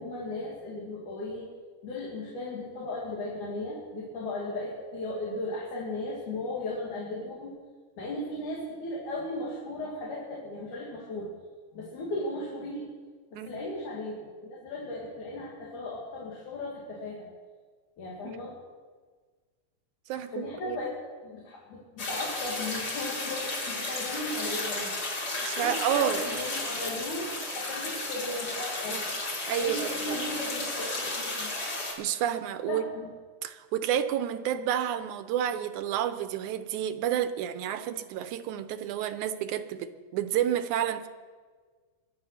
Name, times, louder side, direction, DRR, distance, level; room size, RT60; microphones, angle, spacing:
voice 1, 0.0-1.5 1.8-7.6 8.0-11.3 11.7-12.9 13.3-17.3 18.0-18.6 20.2-20.9 21.2-25.0 25.5-31.5 32.7-33.1, left 2 dB, 85° left, -3 dB, 3.8 m, -36 dB
voice 2, 20.1-20.8 25.4-26.2 28.9-29.0 29.5-30.2 32.0-32.8 33.4-41.1, right 10 dB, 85° right, 11 dB, 2.2 m, -30 dB
sound 1, 22.0-31.9, left 2 dB, 45° left, 4.0 m, -33 dB
23.5 x 8.7 x 5.7 m, 1.5 s
omnidirectional pair, 3.4 m